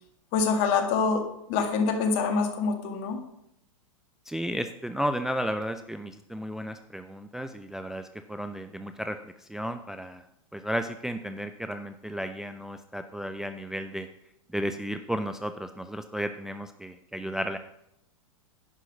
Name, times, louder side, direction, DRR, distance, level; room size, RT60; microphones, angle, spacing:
voice 1, 0.3-3.2, left 5 dB, 50° left, 6 dB, 1.9 m, -25 dB
voice 2, 4.3-10.3 10.5-14.1 14.5-17.6, equal, 5° right, 8 dB, 0.4 m, -33 dB
10.5 x 5.7 x 6.2 m, 0.80 s
hypercardioid pair, 110°, 17 cm